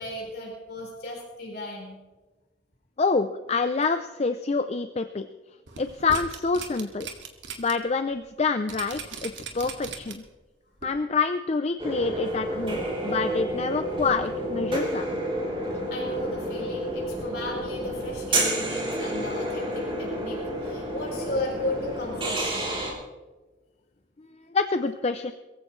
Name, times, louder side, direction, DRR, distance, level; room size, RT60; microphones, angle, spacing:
voice 1, 0.0-2.0 15.9-22.7, left 2 dB, 60° left, -2 dB, 4.5 m, -35 dB
voice 2, 3.0-5.3 5.8-7.1 7.6-10.2 10.8-15.2 24.5-25.3, left 4 dB, 35° left, 9 dB, 0.5 m, -27 dB
sound 1, 5.7-7.7 8.1-8.2 8.7-10.3 10.8-10.9, right 5 dB, 85° right, 2.0 m, -38 dB
sound 2, 11.8-22.9, right 1 dB, 30° right, 3.4 m, -30 dB
22.5 x 15.0 x 3.2 m, 1.2 s
head